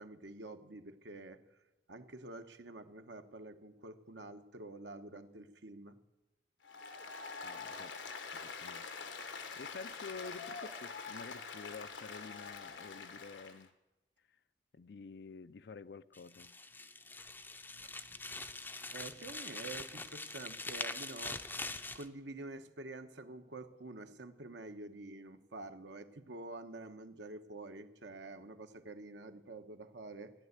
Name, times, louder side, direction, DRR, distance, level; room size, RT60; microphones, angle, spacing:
voice 1, 0.0-1.4 1.9-6.0 18.9-21.7 21.9-30.3, right 2 dB, 75° right, 1.1 m, -48 dB
Applause, 6.6-13.7, left 5 dB, 90° left, 1.4 m, -45 dB
voice 2, 7.4-8.0 8.3-13.7 14.7-16.6, left 4 dB, 65° left, 0.4 m, -50 dB
sound 1, 16.1-22.1, left 3 dB, 10° left, 0.5 m, -43 dB
15.0 x 10.5 x 8.2 m
head